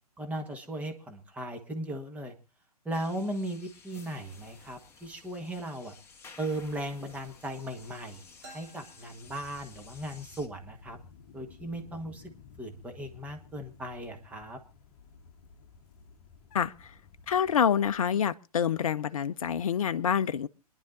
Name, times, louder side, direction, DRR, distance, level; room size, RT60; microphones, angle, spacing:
voice 1, 0.2-2.3 2.8-5.9 6.4-11.0 11.3-12.3 12.6-14.6, right 1 dB, 5° right, 1.5 m, -37 dB
sound 1, 2.9-10.5, left 5 dB, 10° left, 1.4 m, -54 dB
sound 2, 8.4-10.1, right 1 dB, 40° right, 3.6 m, -54 dB
sound 3, 9.2-18.1, left 5 dB, 30° left, 1.4 m, -55 dB
voice 2, 16.5-16.9 17.3-20.5, left 8 dB, 60° left, 0.6 m, -27 dB
26.0 x 10.5 x 2.7 m
figure-of-eight pair, 120°, 20 cm